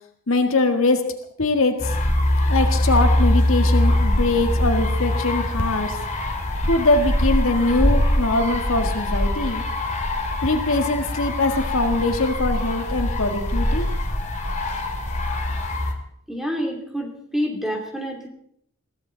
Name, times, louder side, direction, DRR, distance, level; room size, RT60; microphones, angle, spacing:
voice 1, 0.3-1.0 1.4-1.9 2.5-6.0 6.6-9.6 10.4-13.9, left 2 dB, 70° left, 6 dB, 1.8 m, -22 dB
sound 1, 1.8-15.9, left 1 dB, 35° left, 2.4 m, -22 dB
voice 2, 16.3-18.3, equal, ahead, 1 dB, 2.9 m, -27 dB
21.5 x 16.0 x 4.0 m, 0.69 s
head